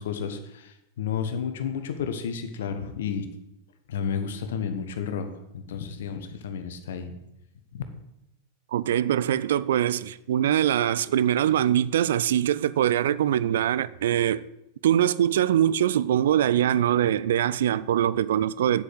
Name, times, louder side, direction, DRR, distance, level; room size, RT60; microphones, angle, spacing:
voice 1, 0.0-3.3 3.9-7.2 7.7-7.8, left 7 dB, 60° left, 1.4 m, -32 dB
voice 2, 8.7-14.5 14.8-18.8, right 11 dB, 60° right, 0.4 m, -23 dB
8.7 x 7.9 x 8.0 m
figure-of-eight pair, 90°, 0 cm